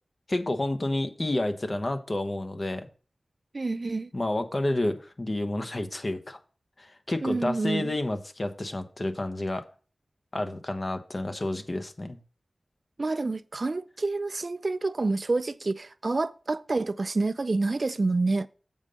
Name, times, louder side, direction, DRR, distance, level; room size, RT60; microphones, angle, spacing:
voice 1, 0.3-2.9 4.1-6.4 6.8-9.6 10.3-12.2, left 1 dB, 45° left, 1.1 m, -30 dB
voice 2, 3.5-4.1 7.2-7.9 13.0-18.5, right 3 dB, 55° right, 0.4 m, -28 dB
7.4 x 5.4 x 4.9 m
wide cardioid pair, 50°, 0 cm